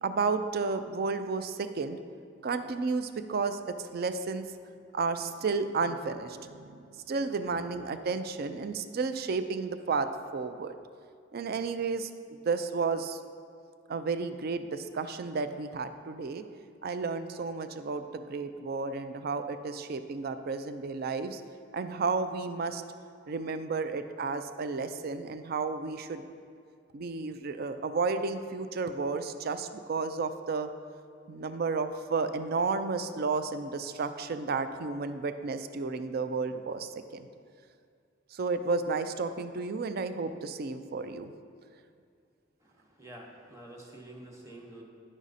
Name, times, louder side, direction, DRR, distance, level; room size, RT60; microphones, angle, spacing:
voice 1, 0.0-2.0 2.4-4.4 4.9-10.8 11.3-12.1 12.4-13.2 13.9-16.5 16.8-21.4 21.7-22.8 23.3-26.2 26.9-30.7 31.3-37.3 38.3-41.3, right 4 dB, 50° right, 10 dB, 0.4 m, -32 dB
voice 2, 43.0-44.8, right 1 dB, 15° right, -1 dB, 1.0 m, -47 dB
9.9 x 6.2 x 4.1 m, 2.3 s
head